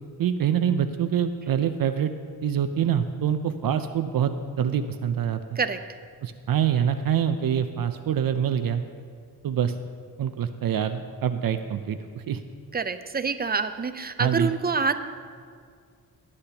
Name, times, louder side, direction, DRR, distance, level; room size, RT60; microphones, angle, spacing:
voice 1, 0.2-2.1 2.4-5.4 6.2-8.8 9.4-9.7 10.2-12.4 14.2-14.5, right 8 dB, 65° right, 9 dB, 0.6 m, -25 dB
voice 2, 12.7-14.9, right 5 dB, 25° right, 10 dB, 0.6 m, -26 dB
18.5 x 9.8 x 2.9 m, 2.1 s
wide cardioid pair, 110°, 38 cm